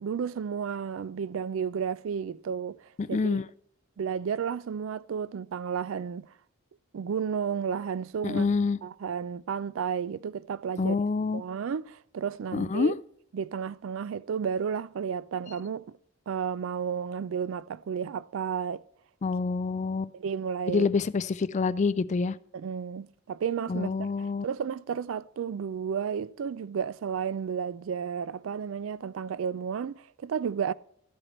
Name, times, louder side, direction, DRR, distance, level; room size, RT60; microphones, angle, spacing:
voice 1, 0.0-3.4 4.0-6.3 6.9-8.5 8.8-11.0 11.3-12.9 13.3-15.9 16.3-18.8 20.1-20.9 22.5-30.7, right 7 dB, 65° right, 0.3 m, -32 dB
voice 2, 3.0-3.4 8.2-8.8 10.8-11.4 12.5-13.0 19.2-20.1 20.7-22.4 23.7-24.5, left 4 dB, 35° left, 0.3 m, -27 dB
12.0 x 7.9 x 4.3 m
head